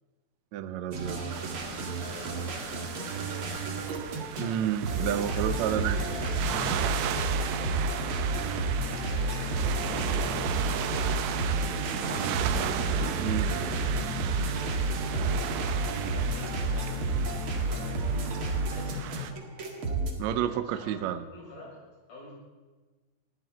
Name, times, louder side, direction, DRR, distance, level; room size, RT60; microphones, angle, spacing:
voice 1, 0.5-1.2 4.4-6.0 13.2-13.5 20.2-21.2, right 10 dB, 85° right, 11 dB, 1.5 m, -30 dB
sound 1, 0.9-20.1, right 2 dB, 40° right, 2.2 m, -31 dB
sound 2, 1.3-19.3, right 9 dB, 70° right, 2.1 m, -35 dB
voice 2, 2.0-3.6 5.6-8.2 8.8-10.4 11.4-12.3 13.1-14.0 14.6-18.4 18.7-19.8 20.4-21.0 21.3-21.8 22.1-22.3, left 1 dB, 55° left, -6 dB, 8.5 m, -47 dB
20.0 x 14.5 x 4.2 m, 1.3 s
omnidirectional pair, 4.3 m